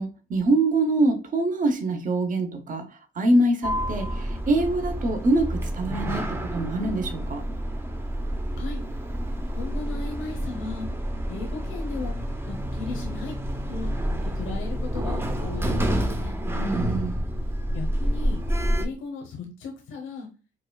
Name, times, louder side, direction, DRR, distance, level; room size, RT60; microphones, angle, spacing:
voice 1, 0.0-2.8 3.2-7.4 16.5-17.2, right 2 dB, 40° right, 0.8 m, -24 dB
Sliding door, 3.6-18.9, equal, 10° right, 0.5 m, -28 dB
voice 2, 9.6-10.9 11.3-12.1 12.5-13.3 13.7-13.9 14.2-16.3 17.7-18.4 18.8-20.3, left 4 dB, 80° left, 0.8 m, -36 dB
4.6 x 2.2 x 2.2 m
cardioid pair, 90°, 20 cm